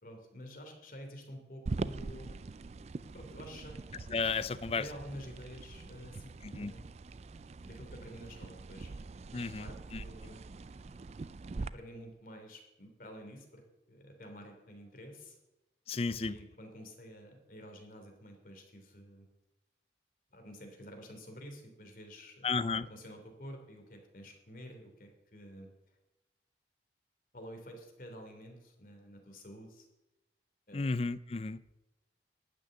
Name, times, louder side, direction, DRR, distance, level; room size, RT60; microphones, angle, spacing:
voice 1, 0.0-2.4 3.0-3.8 4.7-6.9 7.6-8.9 9.6-10.4 11.6-15.4 16.1-19.3 20.3-25.7 27.3-29.9 30.7-30.9, equal, 50° left, 3 dB, 3.1 m, -49 dB
sound 1, 1.7-11.7, right 3 dB, 40° right, 0.3 m, -43 dB
voice 2, 4.1-4.9 6.4-6.7 9.3-10.0 15.9-16.3 22.4-22.9 30.7-31.6, left 4 dB, 35° left, 16 dB, 0.5 m, -33 dB
12.0 x 6.5 x 9.7 m, 0.99 s
head